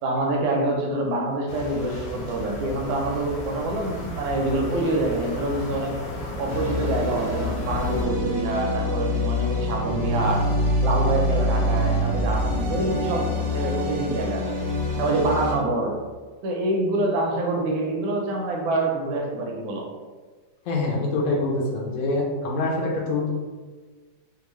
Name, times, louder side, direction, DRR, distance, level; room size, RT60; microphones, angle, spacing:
voice 1, 0.0-5.9 6.4-10.4 10.8-14.6 15.0-16.0 16.4-19.8, right 2 dB, 85° right, 0 dB, 1.4 m, -26 dB
sound 1, 1.5-8.1, left 1 dB, 80° left, 1.3 m, -34 dB
sound 2, 6.5-15.5, left 1 dB, 55° right, 0.6 m, -25 dB
voice 2, 20.7-23.3, left 2 dB, 65° left, -2 dB, 0.9 m, -25 dB
3.5 x 2.4 x 3.1 m, 1.4 s
omnidirectional pair, 2.1 m